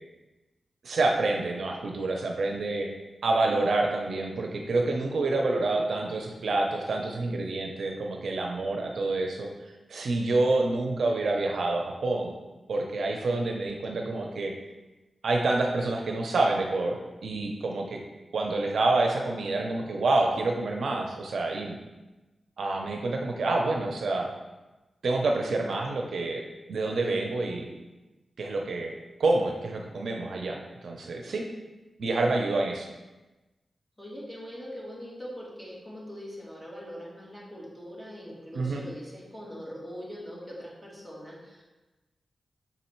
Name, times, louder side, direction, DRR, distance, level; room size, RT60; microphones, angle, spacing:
voice 1, 0.8-2.9 3.2-9.5 9.9-12.3 12.7-14.5 15.2-18.0 18.3-21.8 22.6-24.3 25.0-26.4 26.7-27.7 28.4-28.9 29.2-30.6 30.8-31.4 32.0-32.9 38.5-38.8, right 2 dB, 75° right, 1 dB, 0.7 m, -27 dB
voice 2, 34.0-41.7, equal, ahead, -6 dB, 2.1 m, -42 dB
5.9 x 4.1 x 4.5 m, 1.1 s
wide cardioid pair, 105°, 0 cm